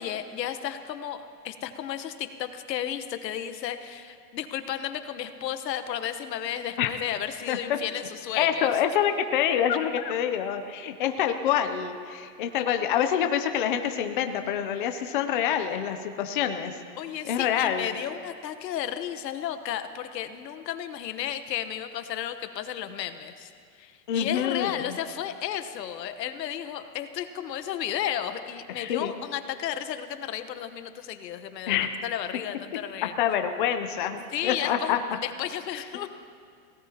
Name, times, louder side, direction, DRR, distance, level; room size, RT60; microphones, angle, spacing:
voice 1, 0.0-8.7 9.7-10.1 17.0-23.5 23.8-33.1 34.3-36.1, left 10 dB, 85° left, 10 dB, 1.2 m, -33 dB
voice 2, 7.5-7.8 8.4-16.8 17.2-17.9 24.1-25.0 28.8-29.2 31.7-32.0 33.2-35.0, left 9 dB, 35° left, 7 dB, 0.5 m, -26 dB
27.5 x 18.0 x 2.9 m, 2.3 s
supercardioid pair, 175°, 48 cm